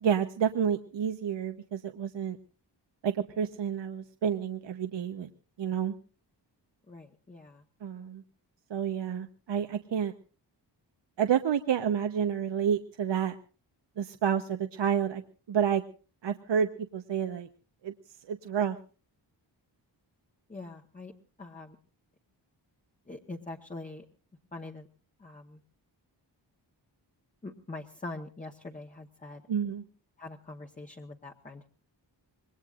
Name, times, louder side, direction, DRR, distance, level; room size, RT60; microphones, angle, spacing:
voice 1, 0.0-2.4 3.0-5.3 5.6-5.9 7.8-8.2 8.7-10.1 11.2-13.4 14.0-15.2 15.5-15.8 16.2-17.5 17.8-17.9 18.3-18.8 29.5-29.8, right 8 dB, 75° right, 8 dB, 1.0 m, -29 dB
voice 2, 6.9-7.6 20.5-21.1 21.4-21.8 23.1-24.0 24.5-24.9 25.2-25.6 27.4-29.4 30.2-31.7, left 2 dB, 20° left, 1 dB, 1.1 m, -43 dB
26.0 x 21.0 x 2.5 m, 0.38 s
wide cardioid pair, 170°, 44 cm